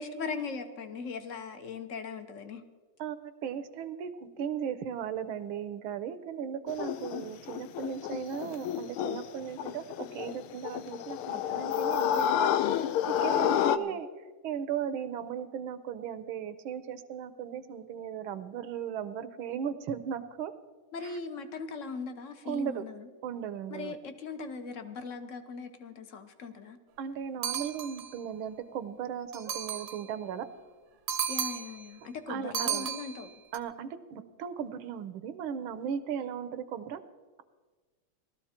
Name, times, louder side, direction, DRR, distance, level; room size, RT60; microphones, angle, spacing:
voice 1, 0.0-2.6 13.6-14.0 20.9-23.1 23.7-26.8 31.3-33.3, left 4 dB, 55° left, 9 dB, 0.9 m, -39 dB
voice 2, 3.0-12.9 13.2-14.1 14.4-20.5 21.0-21.1 22.4-22.8 23.2-24.0 27.0-30.4 32.3-32.9 33.5-37.0, right 8 dB, 75° right, 12 dB, 1.6 m, -37 dB
sound 1, 6.7-13.8, left 10 dB, 85° left, 1.5 m, -29 dB
sound 2, 27.4-28.2 29.3-30.1 31.1-31.9 32.5-33.6, right 8 dB, 60° right, 1.2 m, -34 dB
18.5 x 13.0 x 4.3 m, 1.3 s
omnidirectional pair, 2.3 m